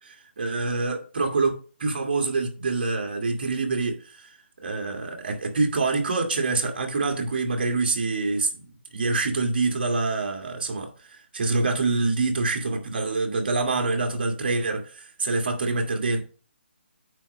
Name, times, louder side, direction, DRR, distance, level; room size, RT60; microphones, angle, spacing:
voice 1, 0.0-4.3 4.6-16.2, right 3 dB, 50° right, 1.9 m, -26 dB
8.8 x 3.1 x 6.2 m
hypercardioid pair, 170°, 6 cm